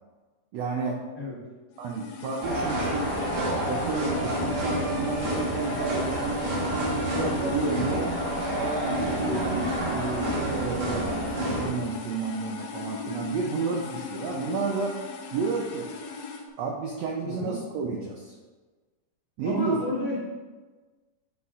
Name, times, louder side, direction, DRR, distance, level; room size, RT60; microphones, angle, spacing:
voice 1, 0.5-1.0 1.8-3.1 3.6-8.1 8.6-15.0 15.3-15.9 16.6-18.3 19.4-19.8, right 4 dB, 80° right, 0 dB, 1.5 m, -31 dB
sound 1, 1.8-16.4, left 5 dB, 70° left, 1.9 m, -38 dB
sound 2, 2.4-11.7, right 1 dB, 60° right, 2.6 m, -29 dB
voice 2, 17.2-17.5 19.4-20.2, left 1 dB, 30° left, -9 dB, 2.3 m, -30 dB
8.3 x 7.0 x 2.5 m, 1.3 s
omnidirectional pair, 3.8 m